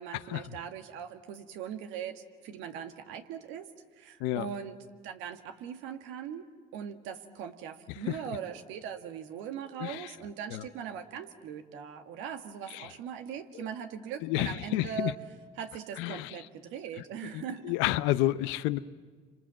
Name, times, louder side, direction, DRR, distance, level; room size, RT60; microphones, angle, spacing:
voice 1, 0.0-3.7 4.0-4.8 5.0-15.1 15.6-17.6, right 8 dB, 85° right, 6 dB, 1.8 m, -40 dB
voice 2, 9.8-10.1 10.5-10.6 12.7-12.9 13.5-13.7 14.2-15.1 16.0-16.3 17.3-18.8, left 16 dB, 85° left, 14 dB, 0.8 m, -30 dB
29.0 x 26.0 x 7.6 m, 1.5 s
supercardioid pair, 75°, 19 cm